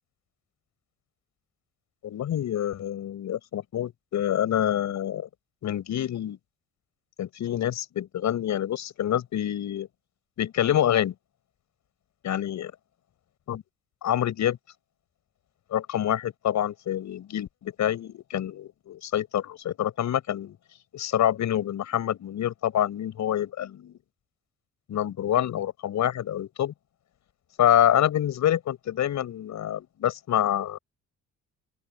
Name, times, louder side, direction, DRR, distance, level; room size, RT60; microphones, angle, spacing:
voice 1, 2.0-5.3 5.6-6.4 7.2-9.9 10.4-11.1 12.2-12.7 13.5-13.6 14.0-14.6 15.7-20.6 20.9-23.9 24.9-26.7 27.6-30.8, left 11 dB, 70° left, 7.3 m, -26 dB
open air
cardioid pair, 90°, 30 cm